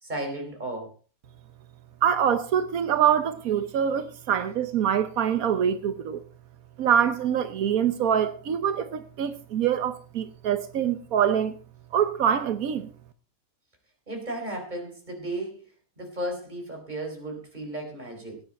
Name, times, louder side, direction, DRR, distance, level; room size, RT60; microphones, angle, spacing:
voice 1, 0.0-0.9 14.1-18.4, right 1 dB, 30° right, 4.5 m, -35 dB
voice 2, 2.0-6.2 6.8-11.5 11.9-12.9, right 9 dB, 90° right, 1.4 m, -24 dB
18.5 x 9.5 x 4.3 m
omnidirectional pair, 1.5 m